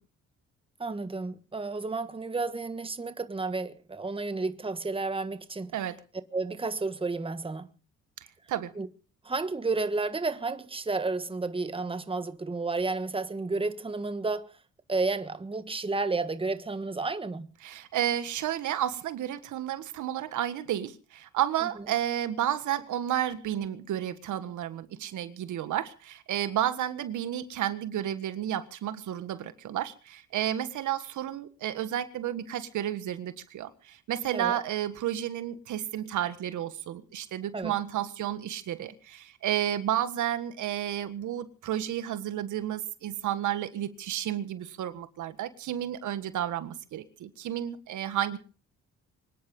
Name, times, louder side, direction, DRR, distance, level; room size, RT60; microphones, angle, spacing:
voice 1, 0.8-5.7 6.3-7.7 8.8-8.9 9.2-14.5 14.9-17.5 34.3-34.6 37.5-37.7, right 3 dB, 20° right, 1.5 m, -31 dB
voice 2, 17.6-48.4, right 11 dB, 75° right, 1.7 m, -31 dB
24.5 x 10.0 x 5.4 m
cardioid pair, 90°, 30 cm